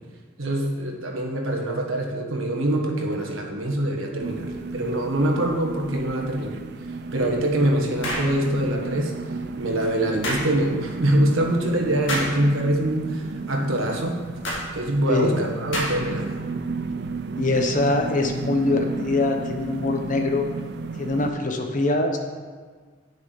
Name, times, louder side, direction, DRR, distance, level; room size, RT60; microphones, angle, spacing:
voice 1, 0.4-6.6 7.1-9.1 9.6-14.2 14.7-16.3, right 1 dB, 80° right, 1 dB, 1.4 m, -24 dB
sound 1, 4.2-21.3, right 4 dB, 55° right, 0.4 m, -34 dB
sound 2, 8.0-8.3 10.2-10.5 12.1-12.4 14.4-14.6 15.7-16.1, equal, 65° left, 2.3 m, -27 dB
voice 2, 15.1-15.4 17.4-20.4 21.0-22.2, left 2 dB, 40° left, 4 dB, 0.9 m, -23 dB
8.8 x 6.6 x 5.0 m, 1.5 s
head